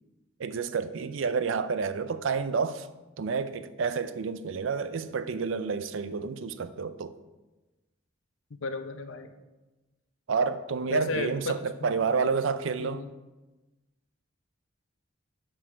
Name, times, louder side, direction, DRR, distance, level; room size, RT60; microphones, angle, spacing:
voice 1, 0.4-2.9 3.2-7.1 10.3-13.0, right 5 dB, 75° right, 0.4 m, -29 dB
voice 2, 8.5-9.4 10.9-11.9 12.8-13.1, left 3 dB, 75° left, 0.6 m, -34 dB
6.5 x 6.0 x 4.5 m
head